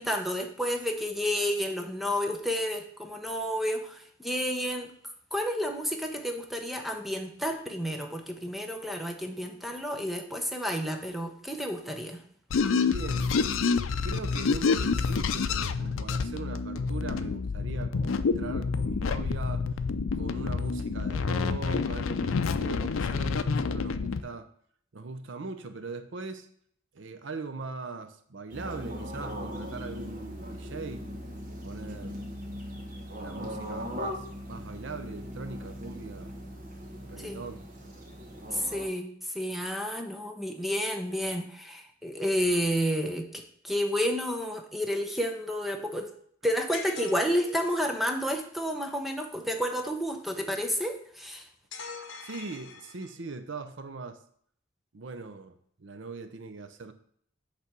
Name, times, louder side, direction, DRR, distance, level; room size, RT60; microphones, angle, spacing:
voice 1, 0.0-4.9 5.3-12.2 37.2-37.4 38.5-46.1 46.4-51.5, equal, ahead, 4 dB, 0.7 m, -30 dB
sound 1, 12.5-24.2, left 5 dB, 85° left, 0.5 m, -28 dB
voice 2, 12.9-13.6 14.0-19.6 20.1-24.5 24.9-26.5 26.9-31.1 31.6-32.2 33.1-36.3 37.1-37.7 38.5-38.6 52.2-54.2 54.9-56.9, right 3 dB, 65° right, 9 dB, 0.7 m, -40 dB
sound 2, 28.5-38.9, equal, 45° right, 1.4 m, -39 dB
sound 3, 46.7-47.9 51.7-53.3, left 5 dB, 65° left, 1.0 m, -43 dB
8.2 x 3.4 x 6.0 m, 0.63 s
head